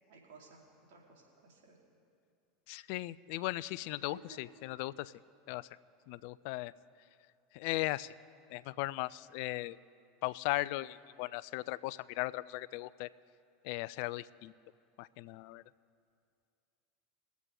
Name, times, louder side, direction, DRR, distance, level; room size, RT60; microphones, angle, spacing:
voice 1, 0.1-0.6 0.9-1.8 3.8-4.4, right 4 dB, 70° right, -1 dB, 2.8 m, -57 dB
voice 2, 2.7-5.1 5.5-5.7 6.1-6.7 7.5-8.1 8.5-9.8 10.2-13.1 13.6-14.5 15.0-15.6, left 19 dB, 65° left, 19 dB, 0.3 m, -37 dB
22.0 x 8.2 x 3.8 m, 2.4 s
hypercardioid pair, 85°, 0 cm